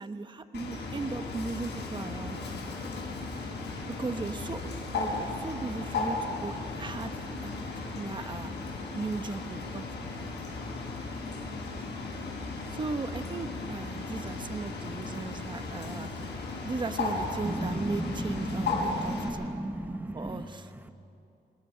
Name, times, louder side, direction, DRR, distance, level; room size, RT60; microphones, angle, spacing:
voice 1, 0.0-2.6 4.0-7.5 8.0-8.5 8.9-10.1 12.7-16.2 16.6-19.6 20.1-20.7, right 3 dB, 25° right, 9 dB, 1.0 m, -37 dB
Bird, 0.5-19.3, left 3 dB, 90° left, 5.0 m, -36 dB
voice 2, 17.4-20.5, right 1 dB, 10° right, 8 dB, 1.2 m, -34 dB
26.0 x 19.5 x 5.6 m, 2.7 s
cardioid pair, 105°, 17 cm